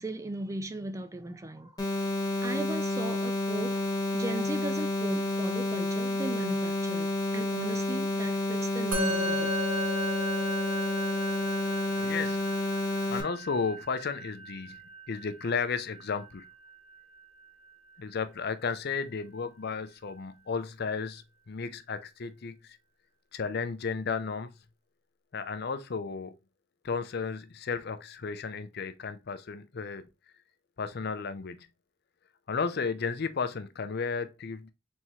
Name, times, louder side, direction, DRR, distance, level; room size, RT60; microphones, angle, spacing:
voice 1, 0.0-1.8 2.4-9.5, right 1 dB, 15° right, 0.3 m, -37 dB
sound 1, 1.8-13.2, left 2 dB, 20° left, 1.2 m, -30 dB
Musical instrument, 8.9-18.5, equal, 85° right, 1.3 m, -37 dB
voice 2, 12.0-12.5 13.1-14.8 15.1-16.4 18.0-22.8 23.3-24.5 25.3-26.3 26.8-30.1 30.8-31.7 32.5-34.7, left 5 dB, 50° left, 0.5 m, -33 dB
4.2 x 3.5 x 3.0 m
head